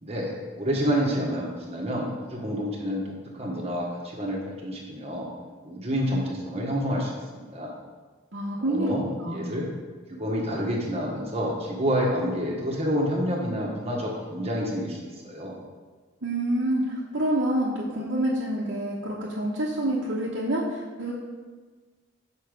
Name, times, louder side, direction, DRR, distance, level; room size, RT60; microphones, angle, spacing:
voice 1, 0.0-3.0 3.3-5.3 5.6-7.7 8.6-9.7 10.1-15.6, equal, 35° right, -2 dB, 1.4 m, -28 dB
voice 2, 8.3-9.6 16.2-21.1, right 1 dB, 80° right, -7 dB, 1.1 m, -27 dB
6.7 x 5.1 x 5.0 m, 1.4 s
head